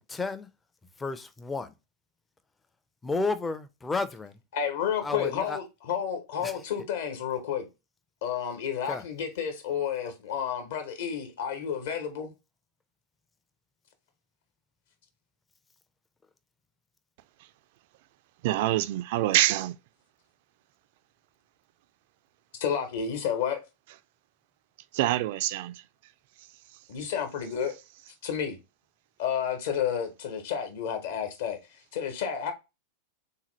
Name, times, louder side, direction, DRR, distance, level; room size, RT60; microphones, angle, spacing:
voice 1, 0.1-0.5 1.0-1.7 3.0-4.4 5.0-5.6 6.4-6.5 8.9-9.0, left 3 dB, 15° left, 0.5 m, -32 dB
voice 2, 4.5-7.7 8.2-12.3 22.6-23.6 26.9-27.7 28.2-28.6 29.2-31.6 31.9-32.5, left 8 dB, 55° left, 1.0 m, -31 dB
voice 3, 18.4-19.7 24.9-25.8, right 15 dB, 50° right, 0.4 m, -25 dB
3.7 x 2.7 x 3.0 m
figure-of-eight pair, 90°, 0 cm